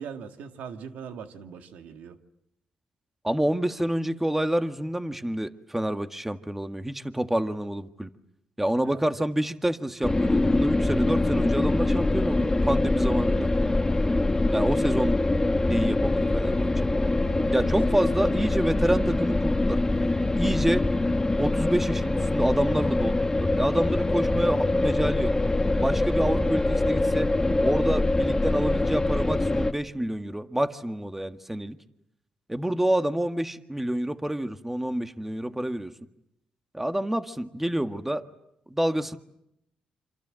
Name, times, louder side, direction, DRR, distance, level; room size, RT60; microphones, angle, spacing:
voice 1, 0.0-2.2 8.8-9.0 17.2-17.7 18.3-18.7, right 7 dB, 85° right, 6 dB, 2.1 m, -41 dB
voice 2, 3.2-8.1 8.6-13.5 14.5-15.2 15.6-16.9 17.5-19.8 20.4-20.8 21.4-25.4 25.8-27.3 27.6-31.8 32.5-35.9 36.7-38.2 38.7-39.2, right 1 dB, 10° right, 8 dB, 1.7 m, -28 dB
sound 1, 10.0-29.7, left 2 dB, 20° left, 1.6 m, -24 dB
28.0 x 27.0 x 7.7 m, 0.79 s
cardioid pair, 75°, 3 cm